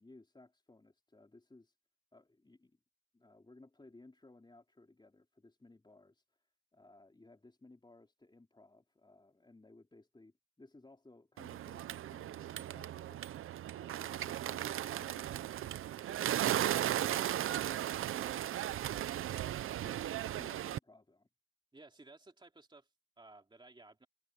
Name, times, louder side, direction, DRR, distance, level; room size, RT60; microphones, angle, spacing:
voice 1, 0.0-1.8 2.1-2.8 3.1-6.2 6.7-15.5 16.0-20.1 20.4-21.3, left 2 dB, 20° left, 4.0 m, -60 dB
Bird, 11.4-20.8, right 12 dB, 85° right, 0.7 m, -36 dB
voice 2, 20.2-20.6 21.7-24.1, right 2 dB, 25° right, 2.6 m, -57 dB
cardioid pair, 60°, 21 cm